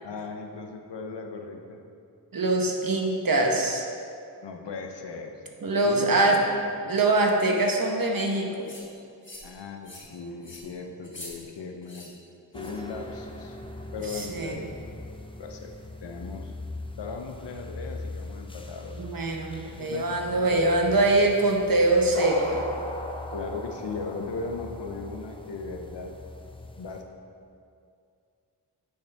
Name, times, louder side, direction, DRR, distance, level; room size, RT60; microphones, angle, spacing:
voice 1, 0.0-1.9 4.4-5.4 5.8-6.4 9.4-12.1 12.5-13.6 13.9-14.7 15.4-15.7 16.0-16.5 17.0-19.0 19.8-20.0 20.5-20.7 23.3-26.1 26.8-27.0, left 4 dB, 85° left, 3 dB, 0.8 m, -37 dB
voice 2, 2.3-3.9 5.6-6.4 6.9-8.7 14.1-14.6 19.0-22.6, right 2 dB, 55° right, 1 dB, 1.0 m, -23 dB
sound 1, 8.6-8.8 9.2-9.5 9.8-10.1 10.4-10.6 11.0-11.3 11.8-12.1 12.5-12.8 14.0-14.3, left 1 dB, 30° left, 1.6 m, -44 dB
sound 2, 12.5-27.0, left 1 dB, 15° left, 0.5 m, -39 dB
9.2 x 5.6 x 3.4 m, 2.4 s
wide cardioid pair, 70°, 41 cm